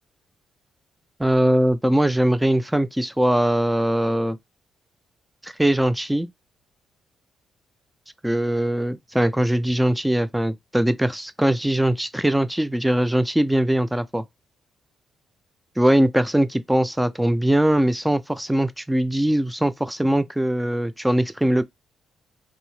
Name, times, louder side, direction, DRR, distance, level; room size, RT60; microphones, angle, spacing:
voice 1, 1.2-4.4 5.4-6.3 8.2-14.2 15.8-21.6, right 1 dB, 5° right, 0.4 m, -21 dB
2.7 x 2.0 x 3.1 m
cardioid pair, 90°, 0 cm